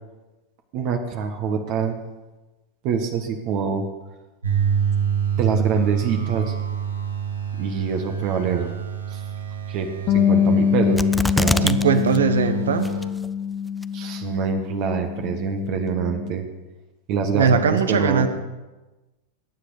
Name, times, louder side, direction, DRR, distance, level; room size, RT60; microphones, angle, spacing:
voice 1, 0.7-2.0 2.8-3.8 5.4-6.5 7.6-8.7 9.1-9.2 9.7-11.1 11.3-11.8 13.9-16.4 17.1-18.3, right 6 dB, 40° right, 5 dB, 1.5 m, -25 dB
sound 1, 4.4-13.1, right 8 dB, 80° right, 2.3 m, -27 dB
Bass guitar, 10.1-16.3, left 8 dB, 40° left, 0.9 m, -24 dB
sound 2, 11.0-11.8 12.1-12.2 12.8-13.3 13.8-13.9, left 1 dB, 5° left, 0.5 m, -23 dB
voice 2, 11.6-12.9 17.3-18.3, right 6 dB, 65° right, 10 dB, 1.4 m, -20 dB
21.5 x 10.0 x 5.1 m, 1.1 s
figure-of-eight pair, 90°, 0 cm